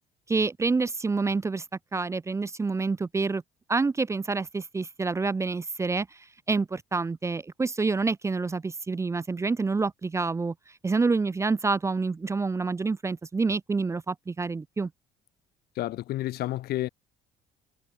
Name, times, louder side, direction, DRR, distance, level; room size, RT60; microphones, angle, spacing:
voice 1, 0.3-1.6 1.9-3.4 3.7-6.2 6.5-10.5 10.8-14.9, right 4 dB, 15° right, 0.5 m, -27 dB
voice 2, 15.8-16.9, left 15 dB, 70° left, 0.8 m, -30 dB
cardioid pair, 110°, 17 cm